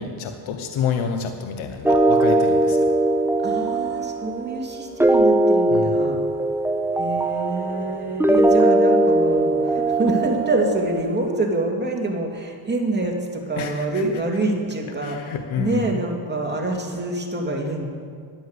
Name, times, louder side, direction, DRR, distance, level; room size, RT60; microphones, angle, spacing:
voice 1, 0.0-2.9 5.7-6.2 13.6-14.1 15.0-16.0, left 7 dB, 70° left, 6 dB, 1.1 m, -29 dB
sound 1, 1.8-11.0, right 2 dB, 5° right, 0.6 m, -20 dB
voice 2, 3.4-6.2 7.0-17.9, right 2 dB, 20° right, 0 dB, 2.6 m, -26 dB
10.5 x 10.0 x 8.1 m, 2.2 s
cardioid pair, 80°, 49 cm